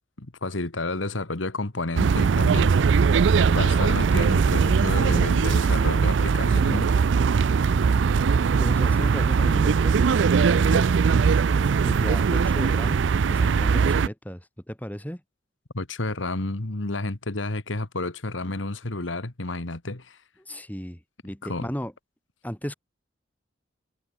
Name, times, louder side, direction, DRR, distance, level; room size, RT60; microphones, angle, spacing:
voice 1, 0.2-2.7 3.5-7.0 10.7-10.8 15.7-20.2 21.4-21.7, left 2 dB, 80° left, 1.8 m, -30 dB
sound 1, 2.0-14.1, right 5 dB, 70° right, 0.4 m, -20 dB
voice 2, 8.6-10.0 11.8-13.0 13.3-15.2 20.5-21.9 22.4-22.7, equal, 10° left, 4.1 m, -35 dB
head